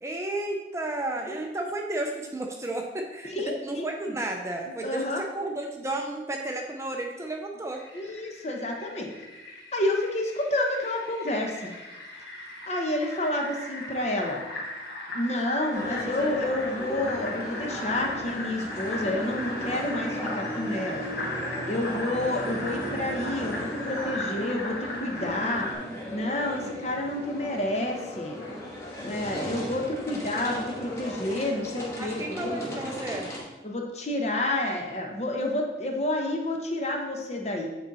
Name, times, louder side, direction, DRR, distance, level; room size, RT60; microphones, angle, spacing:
voice 1, 0.0-7.8 32.0-33.3, right 2 dB, 15° right, 2 dB, 0.5 m, -33 dB
voice 2, 3.2-4.1 4.8-5.2 7.9-9.1 9.7-11.7 12.7-14.4 15.1-21.1 21.6-25.7 26.1-28.4 29.0-32.6 33.6-37.7, left 1 dB, 40° left, 1 dB, 1.0 m, -29 dB
Fill (with liquid), 7.7-25.7, left 2 dB, 75° left, 1.4 m, -38 dB
sound 1, 15.7-33.4, equal, 15° left, 1.5 m, -36 dB
8.9 x 4.0 x 4.1 m, 1.1 s
head